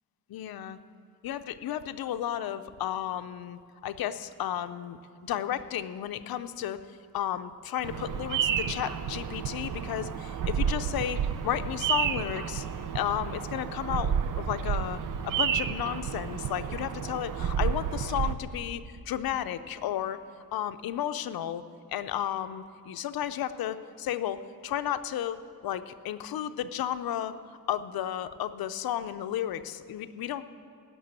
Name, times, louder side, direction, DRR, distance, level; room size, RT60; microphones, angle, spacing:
voice 1, 0.3-0.8 1.2-6.8 7.1-12.7 12.9-20.2 20.5-21.6 21.9-27.3 27.7-30.4, left 11 dB, 90° left, 11 dB, 0.6 m, -33 dB
Bird vocalization bird call bird song, 7.8-18.3, right 8 dB, 65° right, 0.7 m, -31 dB
17.0 x 6.7 x 8.8 m, 2.2 s
wide cardioid pair, 130°, 35 cm